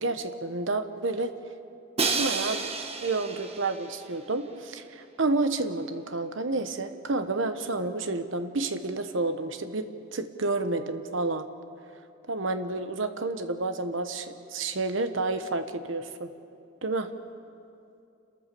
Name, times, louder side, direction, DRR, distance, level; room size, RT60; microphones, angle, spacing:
voice 1, 0.0-1.3 2.2-2.7 3.0-9.9 10.1-11.5 12.3-16.3 16.8-17.1, right 3 dB, 70° right, 9 dB, 1.2 m, -30 dB
Crash cymbal, 2.0-4.0, right 4 dB, 30° right, 1.3 m, -30 dB
29.5 x 14.0 x 6.9 m, 2.6 s
head